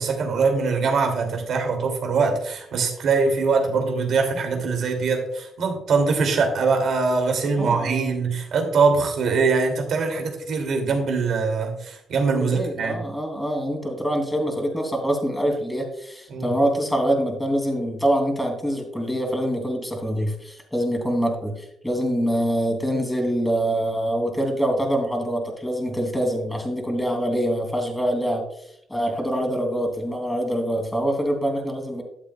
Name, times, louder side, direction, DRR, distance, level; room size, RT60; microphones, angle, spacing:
voice 1, 0.0-13.0 16.3-16.6, right 4 dB, 65° right, 3 dB, 2.5 m, -22 dB
voice 2, 7.6-8.2 12.4-28.4 28.9-32.0, equal, 5° left, 2 dB, 2.7 m, -25 dB
12.5 x 7.9 x 2.3 m, 0.72 s
cardioid pair, 90°, 0 cm